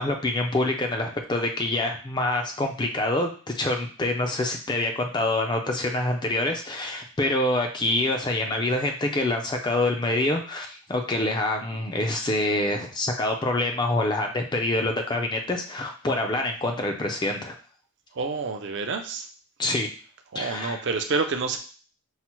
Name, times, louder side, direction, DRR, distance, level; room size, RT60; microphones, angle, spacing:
voice 1, 0.0-17.6 19.6-19.9 20.3-20.8, left 2 dB, 20° left, 3 dB, 0.4 m, -26 dB
voice 2, 18.1-19.3 20.3-21.6, right 4 dB, 55° right, 6 dB, 0.4 m, -28 dB
5.6 x 2.0 x 2.9 m, 0.40 s
head